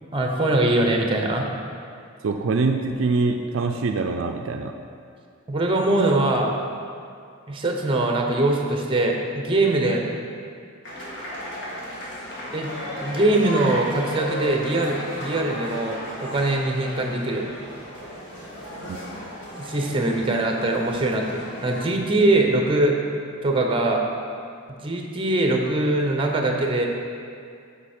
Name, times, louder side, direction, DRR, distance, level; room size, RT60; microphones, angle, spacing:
voice 1, 0.1-1.5 5.5-6.5 7.5-10.0 12.5-12.7 13.0-17.5 19.6-23.0 23.4-24.0 24.8-26.9, right 2 dB, 25° right, 2 dB, 0.7 m, -22 dB
voice 2, 2.2-4.7 18.9-19.0, right 3 dB, 65° right, 4 dB, 0.4 m, -24 dB
sound 1, 10.8-21.8, equal, 55° left, 1.9 m, -35 dB
8.2 x 5.4 x 4.3 m, 2.4 s
head